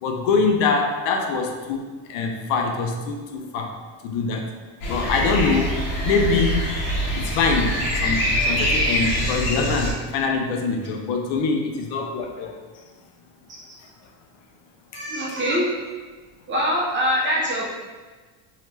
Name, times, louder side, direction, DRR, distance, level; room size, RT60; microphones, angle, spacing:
voice 1, 0.0-3.8 4.0-4.5 4.9-5.7 6.0-6.6 7.1-12.6 14.9-15.4, left 4 dB, 70° left, 3 dB, 0.6 m, -24 dB
sound 1, 4.8-9.9, equal, 45° left, 1.0 m, -24 dB
voice 2, 14.9-15.7 16.5-17.7, equal, 25° right, -4 dB, 0.5 m, -23 dB
2.8 x 2.1 x 3.2 m, 1.4 s
cardioid pair, 125°, 47 cm